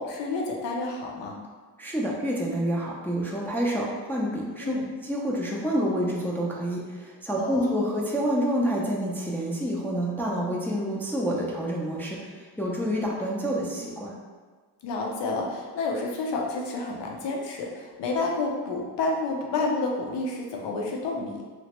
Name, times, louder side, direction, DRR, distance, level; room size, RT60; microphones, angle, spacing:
voice 1, 0.0-1.4 4.6-4.9 7.4-7.9 14.8-21.4, left 3 dB, 75° left, 0 dB, 0.6 m, -30 dB
voice 2, 1.8-4.7 5.0-14.1, equal, 5° left, -4 dB, 0.3 m, -28 dB
3.0 x 2.1 x 2.9 m, 1.4 s
cardioid pair, 100°, 42 cm